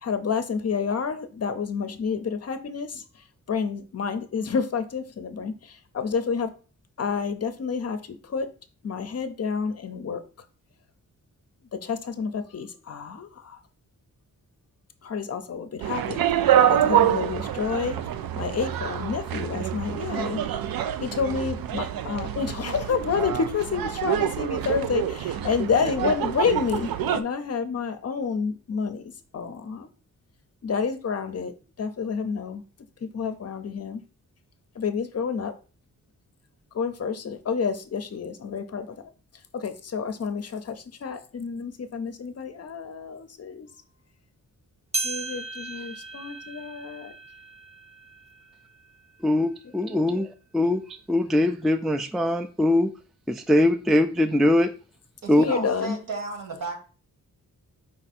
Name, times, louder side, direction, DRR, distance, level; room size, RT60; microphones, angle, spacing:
voice 1, 0.0-6.5 7.0-8.5 8.8-10.2 11.7-13.6 15.0-18.0 18.3-20.4 21.0-29.9 30.6-32.6 33.0-34.0 34.7-35.6 36.7-39.0 39.3-43.7 45.0-47.1 49.9-50.2 55.4-56.0, left 6 dB, 45° left, 9 dB, 0.6 m, -29 dB
sound 1, 15.8-27.2, right 10 dB, 90° right, 0.5 m, -26 dB
sound 2, 44.9-49.6 50.1-50.2 51.0-51.1 52.0-52.1, right 3 dB, 20° right, 0.7 m, -36 dB
voice 2, 49.2-52.9 53.3-54.7 55.3-55.4, left 1 dB, ahead, 8 dB, 0.3 m, -22 dB
voice 3, 55.2-56.8, right 3 dB, 70° right, 4 dB, 1.6 m, -33 dB
4.8 x 2.7 x 4.1 m, 0.36 s
wide cardioid pair, 95°, 34 cm